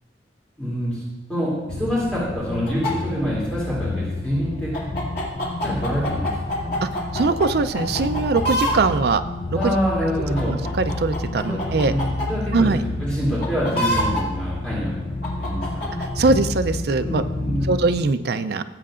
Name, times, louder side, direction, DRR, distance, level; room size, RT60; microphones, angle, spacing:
voice 1, 0.6-1.0 1.3-4.8 5.6-6.3 6.6-6.8 9.5-10.5 11.4-11.6 11.9-12.0 12.3-15.0 15.4-15.8 16.2-16.3 17.0-17.8, equal, 5° left, -8 dB, 2.7 m, -26 dB
sound 1, 1.7-18.0, left 2 dB, 30° left, 0.4 m, -30 dB
sound 2, 2.7-2.9 4.7-7.5 7.7-8.7 9.6-9.7 10.4-12.3 13.4-14.2 15.2-16.1, equal, 55° left, 2.5 m, -26 dB
voice 2, 6.8-9.2 9.6-9.7 10.5-11.9 12.5-12.8 16.0-17.2 17.6-18.6, right 3 dB, 60° right, 10 dB, 0.5 m, -21 dB
16.5 x 7.7 x 2.5 m, 1.2 s
head